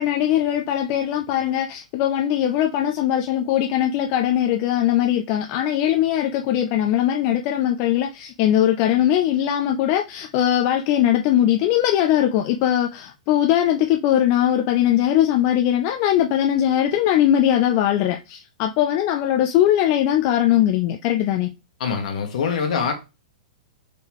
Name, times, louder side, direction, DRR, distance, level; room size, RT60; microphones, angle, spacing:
voice 1, 0.0-21.5, left 11 dB, 40° left, 0.4 m, -20 dB
voice 2, 21.8-22.9, left 6 dB, 70° left, 1.2 m, -24 dB
3.7 x 3.6 x 3.0 m
hypercardioid pair, 130°, 4 cm